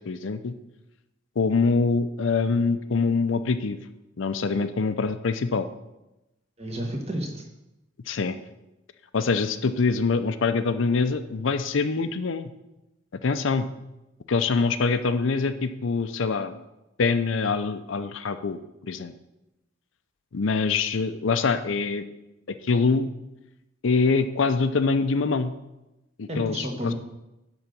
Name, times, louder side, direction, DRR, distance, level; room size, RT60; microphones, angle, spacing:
voice 1, 0.1-0.5 1.4-3.8 4.2-5.7 8.1-8.4 9.1-12.5 13.2-13.7 14.3-16.6 17.0-19.1 20.3-22.0 22.6-23.1 23.8-25.5 26.2-26.9, left 4 dB, 70° left, 10 dB, 0.5 m, -24 dB
voice 2, 6.6-7.4 26.3-26.9, equal, 30° right, 1 dB, 1.6 m, -31 dB
10.5 x 3.9 x 7.0 m, 0.94 s
head